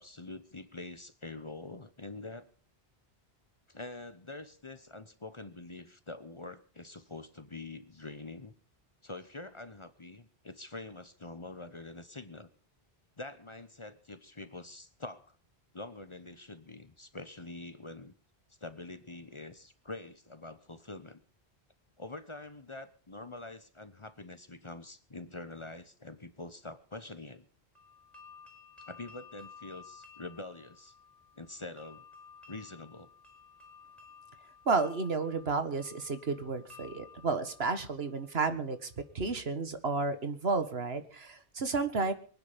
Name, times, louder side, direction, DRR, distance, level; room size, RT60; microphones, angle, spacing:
voice 1, 0.0-2.5 3.7-8.5 9.0-12.5 13.2-15.3 15.7-18.1 18.6-21.2 22.0-27.5 28.9-30.9 31.4-32.0 32.5-33.1 38.5-38.6, left 2 dB, 30° left, 12 dB, 1.0 m, -45 dB
sound 1, 27.8-38.6, left 5 dB, ahead, 4.5 m, -55 dB
voice 2, 34.7-38.8 39.2-42.1, right 4 dB, 80° right, 10 dB, 1.9 m, -32 dB
23.5 x 9.7 x 5.1 m, 0.42 s
omnidirectional pair, 1.0 m